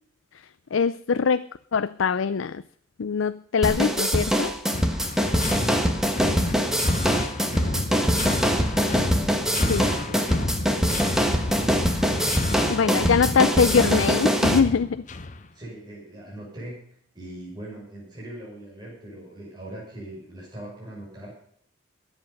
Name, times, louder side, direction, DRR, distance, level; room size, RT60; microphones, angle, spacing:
voice 1, 0.7-2.6 3.0-4.5 9.7-9.9 12.7-15.0, left 6 dB, 80° left, 13 dB, 0.5 m, -23 dB
sound 1, 3.6-14.6, equal, 5° right, 1.5 m, -23 dB
sound 2, 4.7-15.5, left 2 dB, 40° left, 0.9 m, -30 dB
voice 2, 5.2-11.9 12.3-13.8 15.5-21.4, right 1 dB, 20° right, -4 dB, 6.0 m, -40 dB
22.0 x 8.1 x 5.4 m, 0.63 s
head